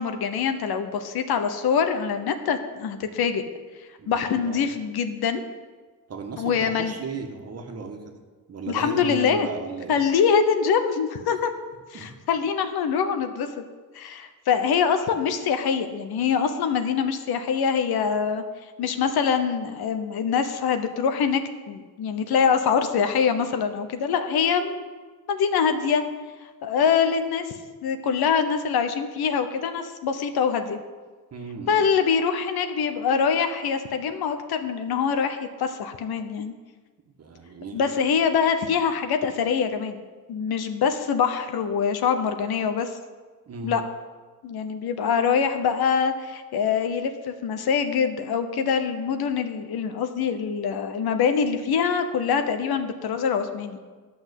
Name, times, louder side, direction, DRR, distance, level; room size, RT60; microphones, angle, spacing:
voice 1, 0.0-3.4 4.1-5.4 6.4-6.9 8.7-9.5 9.9-11.5 11.9-13.6 13.9-18.4 18.8-24.8 25.3-26.0 26.6-27.5 27.8-30.8 31.7-36.5 37.7-40.0 40.3-42.9 43.6-43.8 44.4-53.8, left 6 dB, 80° left, 8 dB, 1.0 m, -24 dB
voice 2, 4.0-4.7 6.1-8.0 8.5-10.0 11.9-12.2 31.3-31.9 37.2-37.9 43.5-43.8, right 4 dB, 40° right, 4 dB, 1.5 m, -36 dB
11.5 x 6.1 x 8.2 m, 1.4 s
cardioid pair, 140°, 37 cm